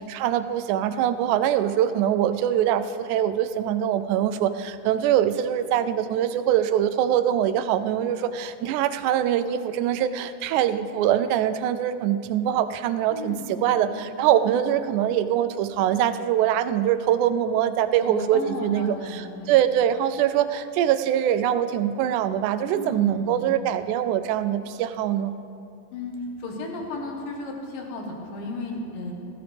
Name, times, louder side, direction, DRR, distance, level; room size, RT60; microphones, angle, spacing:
voice 1, 0.0-25.3, right 10 dB, 80° right, 10 dB, 1.8 m, -23 dB
voice 2, 13.1-14.0 14.3-14.7 18.0-19.7 22.7-23.5 25.9-29.1, left 2 dB, 90° left, 1 dB, 3.2 m, -34 dB
18.5 x 14.5 x 3.5 m, 2.6 s
omnidirectional pair, 3.9 m